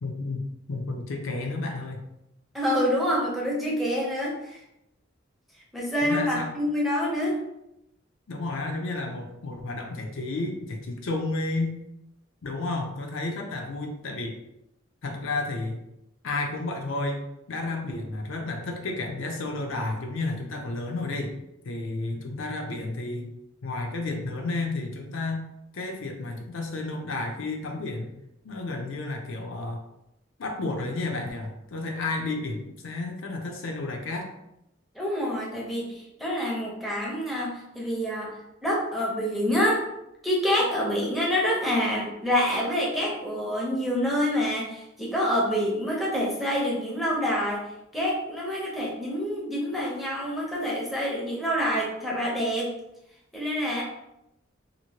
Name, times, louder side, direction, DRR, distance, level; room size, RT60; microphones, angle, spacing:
voice 1, 0.0-2.0 6.0-6.5 8.3-11.8 12.4-14.4 15.0-15.8 16.2-17.2 17.5-21.4 21.6-23.3 23.6-25.4 25.7-28.1 28.4-29.8 30.4-34.3, left 2 dB, 70° left, 2 dB, 0.5 m, -31 dB
voice 2, 2.5-4.6 5.7-7.4 34.9-38.3 38.6-39.8 40.2-47.6 47.9-52.7 53.3-53.8, equal, ahead, -4 dB, 0.7 m, -27 dB
2.9 x 2.6 x 2.8 m, 0.84 s
head